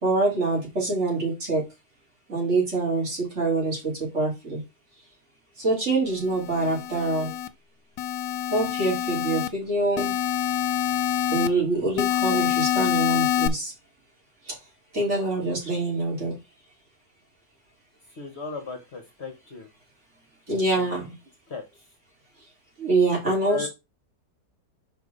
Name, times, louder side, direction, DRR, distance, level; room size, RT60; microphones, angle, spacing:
voice 1, 0.0-1.6 2.3-4.6 5.6-7.3 8.5-10.1 11.3-13.7 14.5-14.6 14.9-16.4 20.5-21.1 22.8-23.7, right 2 dB, 45° right, -3 dB, 3.5 m, -25 dB
sound 1, 6.4-7.5 8.0-9.5 10.0-11.5 12.0-13.5, left 11 dB, 80° left, 1.2 m, -26 dB
voice 2, 18.2-19.7 20.7-20.8 21.5-21.6 23.2-23.7, left 5 dB, 45° left, 4 dB, 1.3 m, -35 dB
5.2 x 4.7 x 4.7 m, 0.24 s
omnidirectional pair, 1.7 m